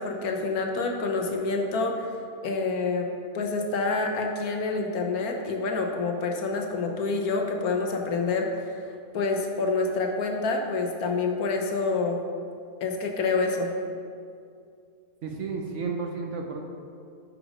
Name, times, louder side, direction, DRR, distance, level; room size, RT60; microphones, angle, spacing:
voice 1, 0.0-2.1 2.4-8.7 9.1-12.2 12.8-13.7, left 3 dB, 75° left, 3 dB, 1.3 m, -27 dB
voice 2, 15.2-16.6, right 4 dB, 60° right, 2 dB, 1.1 m, -32 dB
10.0 x 5.2 x 4.9 m, 2.4 s
omnidirectional pair, 1.6 m